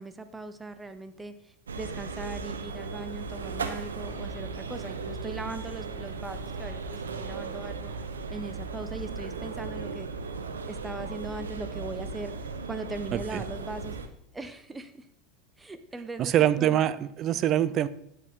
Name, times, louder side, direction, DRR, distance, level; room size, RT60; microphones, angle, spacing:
voice 1, 0.0-7.9 8.3-10.1 10.7-12.3 12.7-14.0 14.3-15.1 15.6-16.8, right 3 dB, 15° right, 10 dB, 1.1 m, -40 dB
sound 1, 1.7-14.1, right 4 dB, 85° right, 0.9 m, -36 dB
voice 2, 13.1-13.4 16.2-17.9, right 11 dB, 40° right, 17 dB, 0.6 m, -24 dB
12.0 x 8.7 x 3.7 m, 0.73 s
hypercardioid pair, 85°, 0 cm